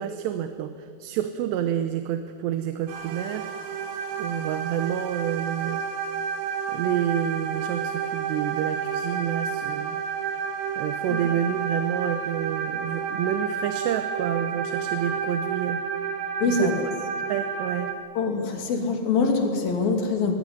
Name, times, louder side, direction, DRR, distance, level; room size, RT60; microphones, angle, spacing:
voice 1, 0.0-3.5 4.2-5.8 6.7-10.0 10.8-15.8 16.4-16.9 17.3-18.0, right 10 dB, 85° right, 9 dB, 3.0 m, -29 dB
sound 1, 2.9-17.9, right 6 dB, 65° right, 3.1 m, -30 dB
voice 2, 16.4-16.7 18.2-20.4, left 4 dB, 60° left, 4 dB, 4.2 m, -24 dB
20.5 x 18.0 x 9.9 m, 2.3 s
omnidirectional pair, 4.8 m